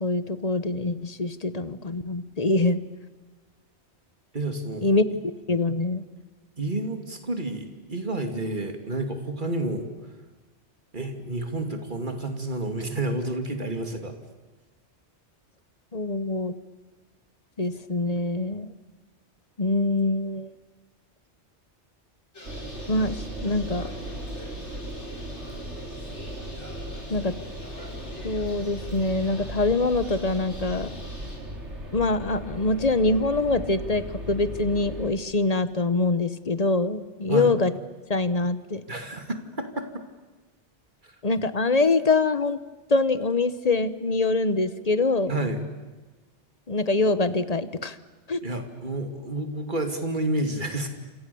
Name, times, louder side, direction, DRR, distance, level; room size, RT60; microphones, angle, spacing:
voice 1, 0.0-2.8 4.8-5.0 5.5-6.0 15.9-16.5 17.6-18.7 19.6-20.5 22.9-23.9 27.1-27.3 28.2-30.9 31.9-37.7 38.1-38.8 41.2-42.6 42.9-45.3 46.7-48.0 48.3-48.4, left 2 dB, 35° left, 13 dB, 1.1 m, -24 dB
voice 2, 4.3-4.9 6.6-9.9 10.9-14.2 37.3-37.5 38.9-40.0 41.0-41.2 45.3-45.7 48.4-50.9, right 2 dB, 45° right, 6 dB, 2.7 m, -30 dB
Bird, 22.3-31.4, left 1 dB, 90° left, 5.3 m, -45 dB
sound 1, 22.4-35.1, right 1 dB, 80° right, 4.0 m, -37 dB
29.0 x 27.5 x 7.0 m, 1.2 s
omnidirectional pair, 1.2 m